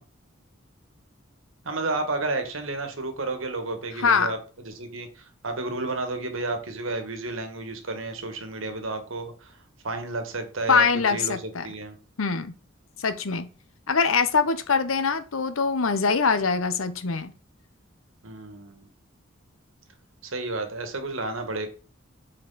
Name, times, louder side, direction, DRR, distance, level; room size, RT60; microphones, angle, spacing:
voice 1, 1.6-4.4 4.6-9.6 9.8-11.9 18.2-18.9 20.2-21.7, right 2 dB, 75° right, 1.5 m, -31 dB
voice 2, 4.0-4.3 10.7-11.7 12.2-12.5 13.0-13.5 13.9-17.3, left 5 dB, 90° left, 0.8 m, -23 dB
7.6 x 4.6 x 4.0 m
head